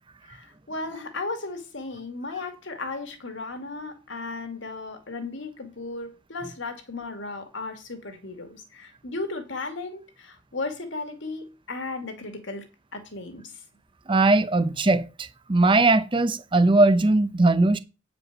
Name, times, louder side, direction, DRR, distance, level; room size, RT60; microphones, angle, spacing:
voice 1, 0.3-12.6 12.9-13.4, left 3 dB, 65° left, 2.2 m, -35 dB
voice 2, 14.1-17.8, right 2 dB, 25° right, 0.6 m, -20 dB
9.2 x 5.2 x 6.1 m
head